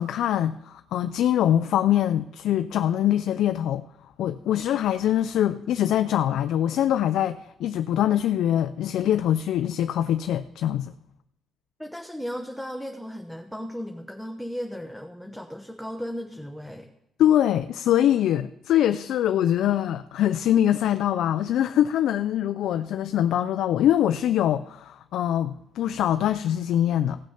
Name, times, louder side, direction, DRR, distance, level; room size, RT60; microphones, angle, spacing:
voice 1, 0.0-3.9 4.2-10.9 17.2-27.2, left 11 dB, 80° left, 0.3 m, -23 dB
voice 2, 11.8-16.9, equal, ahead, 0.9 m, -35 dB
16.0 x 6.1 x 5.7 m
cardioid pair, 90°, 0 cm